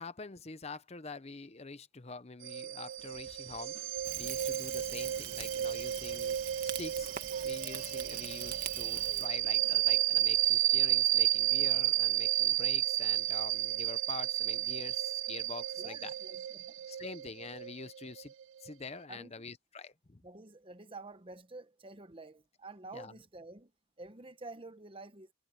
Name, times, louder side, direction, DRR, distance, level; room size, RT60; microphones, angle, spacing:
voice 1, 0.0-3.7 4.2-7.1 7.4-16.1 16.9-18.3 18.6-20.2 22.9-23.1, left 4 dB, 30° left, 0.8 m, -46 dB
sound 1, 2.4-18.7, right 13 dB, 70° right, 0.5 m, -32 dB
sound 2, 3.0-11.2 11.6-11.7, left 3 dB, 85° left, 5.7 m, -61 dB
Rain / Fire, 4.0-9.3, right 9 dB, 40° right, 2.0 m, -43 dB
voice 2, 15.8-16.8 19.1-19.3 20.2-23.7 24.0-25.3, right 2 dB, 25° right, 0.9 m, -49 dB
head